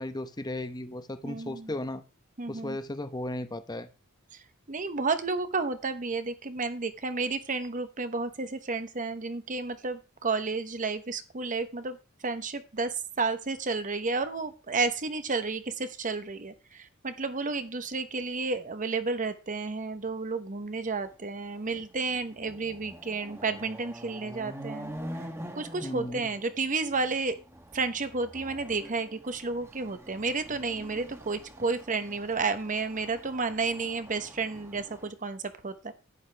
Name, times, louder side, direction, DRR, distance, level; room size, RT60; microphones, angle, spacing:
voice 1, 0.0-2.0 2.5-3.9 25.8-26.3, left 1 dB, 20° left, 10 dB, 0.9 m, -35 dB
voice 2, 1.2-1.7 2.4-2.8 4.3-12.0 12.2-24.9 25.5-27.4 27.7-35.9, right 4 dB, 35° right, 10 dB, 0.9 m, -31 dB
Chatter / Car passing by / Motorcycle, 21.1-21.2 21.5-35.1, equal, 10° right, 1.1 m, -45 dB
11.0 x 9.5 x 3.4 m, 0.32 s
head